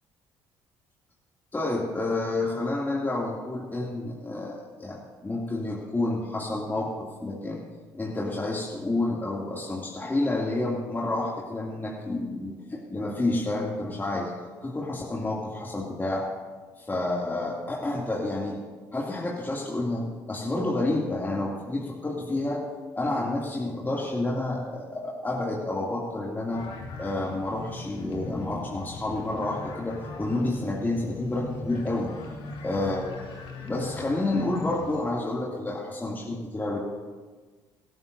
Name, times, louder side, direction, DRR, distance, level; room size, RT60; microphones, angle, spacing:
voice 1, 1.5-7.6 7.9-14.3 14.6-16.3 16.8-18.6 18.9-22.6 23.0-26.6 27.0-32.1 32.6-33.2 33.6-36.8, left 2 dB, 20° left, -4 dB, 2.7 m, -29 dB
sound 1, 26.5-35.0, left 3 dB, 65° left, 2.5 m, -40 dB
19.5 x 12.5 x 2.7 m, 1.4 s
hypercardioid pair, 60°, 10 cm